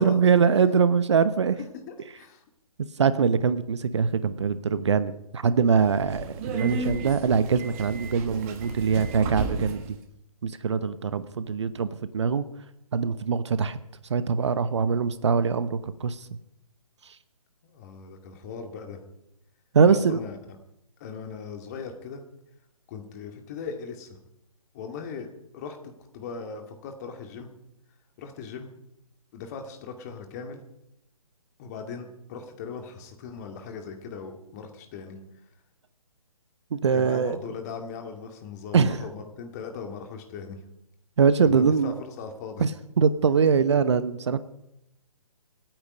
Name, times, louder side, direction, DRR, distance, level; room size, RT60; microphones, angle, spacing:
voice 1, 0.0-1.6 3.0-10.0 10.4-12.5 12.9-13.8 14.1-16.3 19.7-20.2 36.7-37.4 38.7-39.0 41.2-42.0 42.6-44.4, right 6 dB, 50° right, 14 dB, 0.9 m, -23 dB
voice 2, 1.6-2.4 17.6-19.0 19.9-20.6 21.0-22.2 22.9-24.2 24.7-25.3 25.5-27.5 28.2-28.8 29.3-30.6 31.6-35.2 36.9-40.6 41.4-42.7, left 5 dB, 30° left, 4 dB, 2.2 m, -39 dB
Subway metro underground, 5.7-10.0, right 4 dB, 25° right, 1.6 m, -34 dB
27.0 x 9.0 x 5.2 m, 0.83 s
figure-of-eight pair, 140°, 19 cm